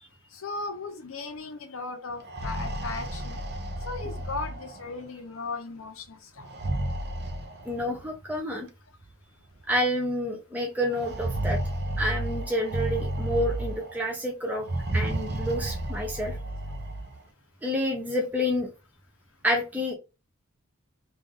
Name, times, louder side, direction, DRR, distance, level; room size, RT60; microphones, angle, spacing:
voice 1, 0.3-3.4 3.8-6.5, left 3 dB, 65° left, 0.8 m, -37 dB
sound 1, 2.1-5.0 6.4-8.1 9.1-9.2 9.5-9.6 10.9-14.0 14.6-17.2, right 1 dB, 50° right, 0.6 m, -32 dB
voice 2, 7.7-8.7 9.7-11.6 12.0-14.7 14.9-16.3 17.6-18.7 19.4-19.9, equal, 10° right, 0.6 m, -28 dB
3.2 x 2.5 x 3.6 m
head